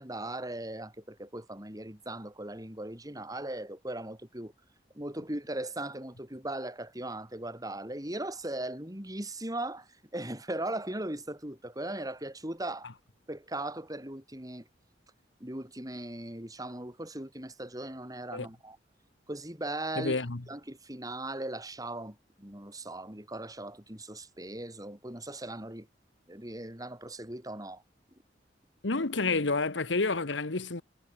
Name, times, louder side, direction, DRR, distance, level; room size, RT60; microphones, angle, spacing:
voice 1, 0.0-4.5 4.9-9.9 10.1-12.9 13.3-14.6 15.4-18.8 19.3-20.2 20.5-25.9 26.3-27.8, right 1 dB, 20° right, 5.7 m, -38 dB
voice 2, 20.0-20.4 28.8-30.8, left 3 dB, 90° left, 1.4 m, -29 dB
head